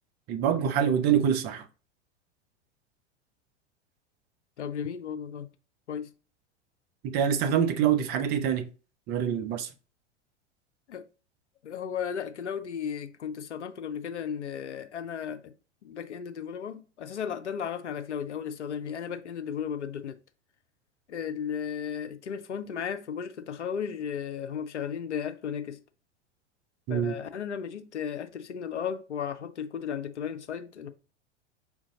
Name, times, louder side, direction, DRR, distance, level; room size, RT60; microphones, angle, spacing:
voice 1, 0.3-1.7 7.0-8.7 9.1-9.7 26.9-27.1, right 8 dB, 30° right, 0.5 m, -25 dB
voice 2, 4.6-5.5 5.9-6.1 10.9-11.0 11.6-15.5 15.8-20.2 21.1-25.8 26.9-30.9, left 7 dB, 80° left, 0.6 m, -35 dB
5.2 x 2.5 x 3.7 m
figure-of-eight pair, 90°, 35 cm